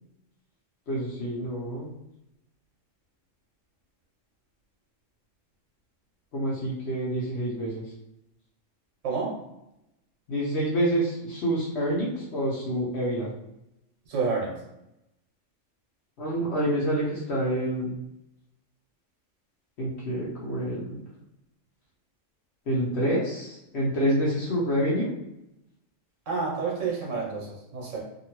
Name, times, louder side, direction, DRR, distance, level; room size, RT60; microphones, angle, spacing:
voice 1, 0.9-1.9 6.3-7.9 10.3-13.3 16.2-17.9 19.8-21.0 22.7-25.1, right 1 dB, 60° left, -6 dB, 1.0 m, -27 dB
voice 2, 9.0-9.4 14.1-14.6 26.3-28.0, right 4 dB, 75° right, -2 dB, 1.2 m, -29 dB
2.8 x 2.6 x 2.9 m, 0.87 s
omnidirectional pair, 1.3 m